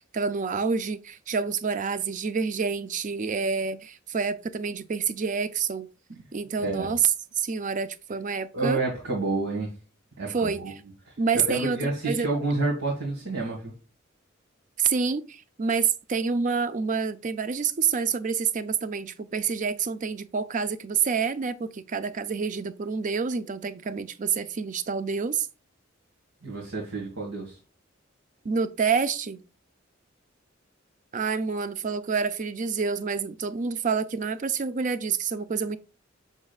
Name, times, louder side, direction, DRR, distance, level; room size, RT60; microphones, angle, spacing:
voice 1, 0.0-5.9 6.3-7.0 7.4-8.8 10.3-10.7 11.2-12.3 14.8-25.5 28.4-29.4 31.1-35.8, right 5 dB, 40° right, 0.5 m, -28 dB
voice 2, 8.5-9.7 10.2-10.7 11.3-13.7 26.4-27.6, right 3 dB, 90° right, 1.9 m, -29 dB
7.2 x 6.2 x 2.4 m
head